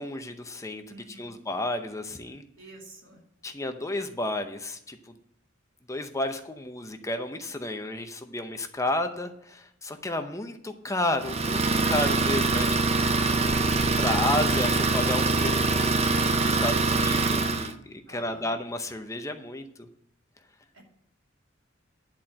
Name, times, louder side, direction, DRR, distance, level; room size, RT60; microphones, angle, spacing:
voice 1, 0.0-2.4 3.4-5.1 5.9-13.1 14.0-19.9, left 1 dB, 15° left, 7 dB, 0.7 m, -32 dB
voice 2, 0.9-1.4 2.6-3.2 18.1-18.6 20.7-20.8, right 1 dB, 80° right, -1 dB, 2.7 m, -49 dB
Idling, 11.2-17.7, right 3 dB, 30° right, 0.7 m, -24 dB
10.5 x 4.4 x 7.6 m, 0.73 s
head